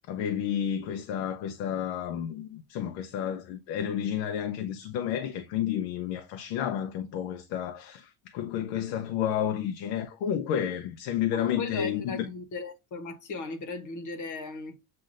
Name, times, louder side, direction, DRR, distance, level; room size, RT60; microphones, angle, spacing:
voice 1, 0.1-12.2, left 9 dB, 80° left, 0.7 m, -31 dB
voice 2, 11.3-14.8, left 3 dB, 40° left, 1.1 m, -37 dB
7.6 x 2.6 x 2.5 m
cardioid pair, 140°, 44 cm